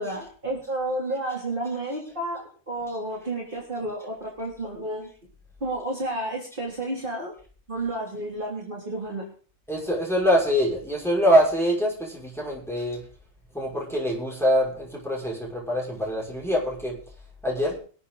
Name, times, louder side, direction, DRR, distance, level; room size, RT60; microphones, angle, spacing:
voice 1, 0.0-5.1 5.6-7.3 7.7-9.2, right 1 dB, 40° right, -3 dB, 3.5 m, -31 dB
voice 2, 9.7-13.0 13.5-16.9 17.4-17.8, equal, ahead, -3 dB, 6.0 m, -24 dB
24.0 x 8.4 x 4.0 m, 0.40 s
omnidirectional pair, 1.4 m